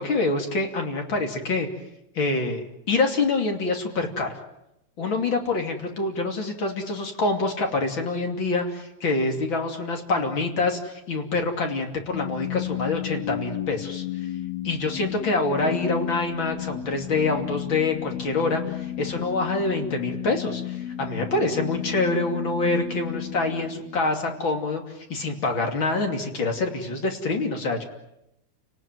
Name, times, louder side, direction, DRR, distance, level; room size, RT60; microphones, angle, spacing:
voice 1, 0.0-1.7 2.1-4.3 5.0-14.0 14.6-27.8, left 3 dB, 40° left, 3 dB, 3.4 m, -26 dB
sound 1, 12.1-24.3, left 13 dB, 70° left, 2.5 m, -33 dB
30.0 x 19.0 x 9.2 m, 0.85 s
omnidirectional pair, 3.3 m